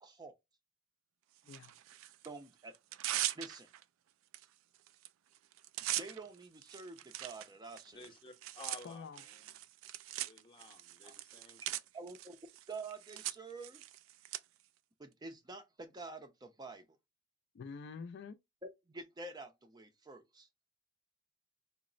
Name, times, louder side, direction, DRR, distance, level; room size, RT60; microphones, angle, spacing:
voice 1, 0.0-0.3 2.2-2.7 3.4-3.7 6.0-8.1 11.0-11.2 11.9-12.4 12.7-13.8 15.0-17.0 18.9-20.5, right 3 dB, 20° right, 0.4 m, -48 dB
Tearing, 1.5-2.3 2.7-3.8 4.3-4.5 4.7-5.1 5.3-14.4, right 14 dB, 90° right, 0.3 m, -41 dB
voice 2, 7.9-9.5 10.1-11.6, left 3 dB, 25° left, 0.7 m, -54 dB
voice 3, 8.8-9.2 17.5-18.4, left 5 dB, 60° left, 0.3 m, -47 dB
3.9 x 2.0 x 2.4 m
head